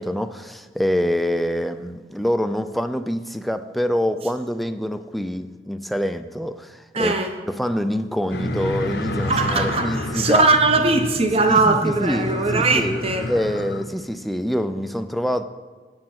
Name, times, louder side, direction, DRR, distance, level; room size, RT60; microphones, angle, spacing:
voice 1, 0.0-7.1 7.5-10.5 11.5-15.4, equal, ahead, 9 dB, 0.3 m, -25 dB
voice 2, 6.9-7.3 9.3-13.2, right 3 dB, 35° right, 6 dB, 0.8 m, -20 dB
sound 1, 8.3-13.8, left 2 dB, 65° left, 0.8 m, -29 dB
9.5 x 4.5 x 7.5 m, 1.4 s
head